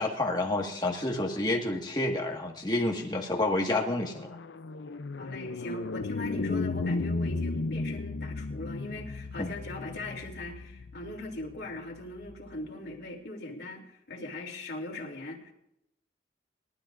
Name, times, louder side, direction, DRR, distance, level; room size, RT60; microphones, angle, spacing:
voice 1, 0.0-4.4 6.5-6.6 9.4-9.5, left 2 dB, 25° left, 0 dB, 1.7 m, -29 dB
sound 1, 3.0-12.5, left 3 dB, 85° left, 0.6 m, -35 dB
voice 2, 5.2-15.5, left 2 dB, 65° left, -1 dB, 3.1 m, -40 dB
25.0 x 12.5 x 2.6 m, 0.81 s
head